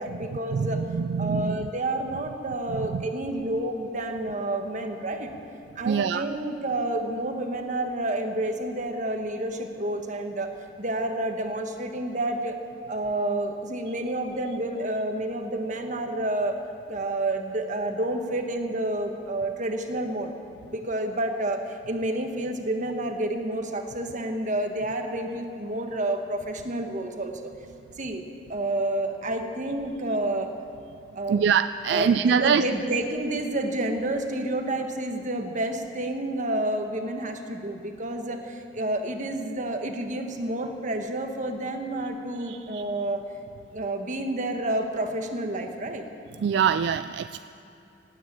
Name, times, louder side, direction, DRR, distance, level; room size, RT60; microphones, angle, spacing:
voice 1, 0.0-0.8 1.2-5.3 5.7-10.5 10.8-12.6 12.9-16.6 16.9-20.3 20.7-27.5 28.0-30.5 31.1-31.5 31.9-43.2 43.7-46.0, right 1 dB, 45° right, 5 dB, 1.4 m, -29 dB
voice 2, 0.5-1.7 2.9-3.0 5.8-6.2 31.3-32.6 42.5-42.8 46.4-47.4, right 7 dB, 70° right, 13 dB, 0.3 m, -24 dB
17.5 x 9.5 x 8.7 m, 2.9 s
head